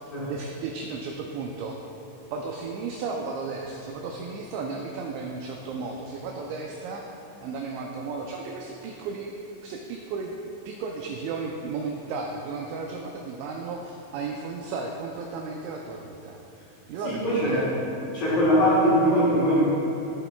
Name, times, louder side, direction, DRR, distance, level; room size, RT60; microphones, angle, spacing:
voice 1, 0.0-1.8 2.3-7.0 7.4-9.3 9.6-16.4 16.9-17.7, right 4 dB, 85° right, 1 dB, 2.5 m, -34 dB
voice 2, 17.0-17.7 18.1-19.6, equal, 60° left, -9 dB, 2.5 m, -21 dB
14.5 x 6.9 x 2.3 m, 3.0 s
omnidirectional pair, 5.7 m